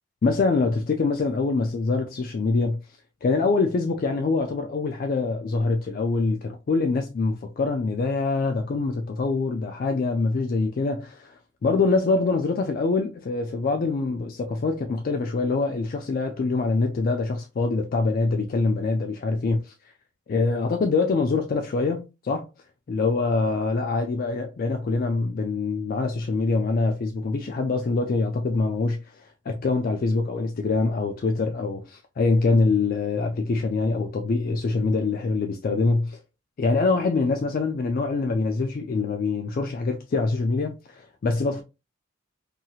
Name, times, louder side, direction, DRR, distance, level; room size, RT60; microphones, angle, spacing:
voice 1, 0.2-2.8 3.2-19.7 20.3-22.5 22.9-36.2 36.6-41.6, left 3 dB, 45° left, 0.3 m, -24 dB
2.8 x 2.8 x 2.3 m
head